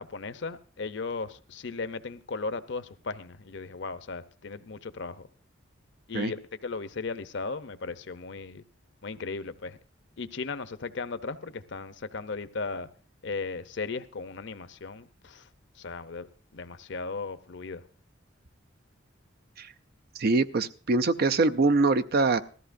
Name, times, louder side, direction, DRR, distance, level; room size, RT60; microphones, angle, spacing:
voice 1, 0.0-5.3 6.1-8.6 9.0-9.8 10.2-12.9 13.2-15.4 15.8-16.3 16.5-17.8, left 4 dB, 65° left, 0.7 m, -36 dB
voice 2, 20.2-22.4, right 3 dB, 50° right, 0.5 m, -24 dB
19.0 x 14.0 x 2.6 m
head